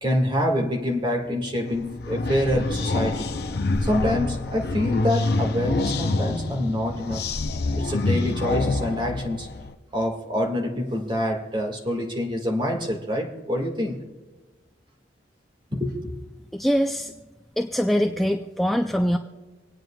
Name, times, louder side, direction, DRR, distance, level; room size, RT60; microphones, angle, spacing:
voice 1, 0.0-3.3 3.8-7.2 7.8-9.5 9.9-14.0 15.7-16.1, left 1 dB, 25° right, 1 dB, 1.7 m, -26 dB
sound 1, 1.7-9.7, left 3 dB, 60° left, 0.6 m, -27 dB
voice 2, 16.5-17.1 17.6-19.2, equal, ahead, 3 dB, 0.4 m, -23 dB
27.0 x 9.2 x 2.3 m, 1.3 s
head